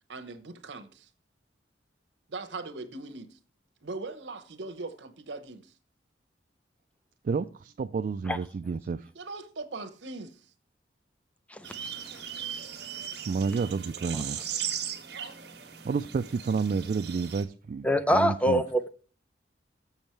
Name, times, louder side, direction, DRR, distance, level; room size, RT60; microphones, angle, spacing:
voice 1, 0.1-1.1 2.3-3.4 3.8-5.7 9.1-10.5 15.1-15.4, right 3 dB, 85° right, 1.0 m, -40 dB
voice 2, 7.2-9.1 13.2-14.4 15.8-18.6, right 5 dB, 50° right, 0.3 m, -30 dB
sound 1, 11.6-17.4, right 9 dB, 65° right, 1.4 m, -38 dB
voice 3, 17.8-18.9, equal, 10° left, 0.5 m, -24 dB
7.1 x 6.4 x 4.5 m
head